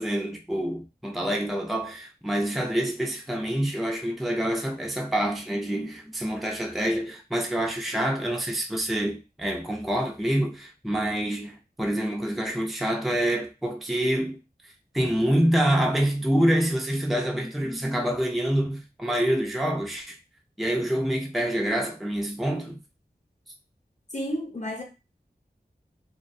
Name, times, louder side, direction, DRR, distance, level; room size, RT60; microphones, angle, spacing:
voice 1, 0.0-14.4 14.9-20.2 20.6-22.8, right 1 dB, ahead, 0.4 m, -26 dB
voice 2, 24.1-24.8, equal, 45° left, 0.9 m, -31 dB
2.3 x 2.1 x 2.5 m
wide cardioid pair, 45°, 17 cm